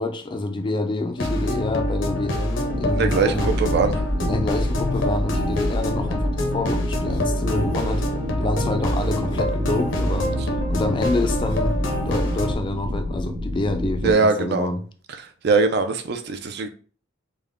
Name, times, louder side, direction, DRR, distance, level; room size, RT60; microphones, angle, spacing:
voice 1, 0.0-3.5 4.2-8.1 8.4-10.3 10.7-11.8 12.1-14.8, left 2 dB, 25° left, 0.3 m, -27 dB
sound 1, 1.2-12.6, left 1 dB, 70° left, 0.6 m, -25 dB
sound 2, 2.7-14.1, equal, 90° right, 0.9 m, -30 dB
voice 2, 2.9-4.1 14.0-14.7 15.2-16.7, right 4 dB, 55° right, 0.4 m, -22 dB
3.5 x 2.1 x 3.5 m
head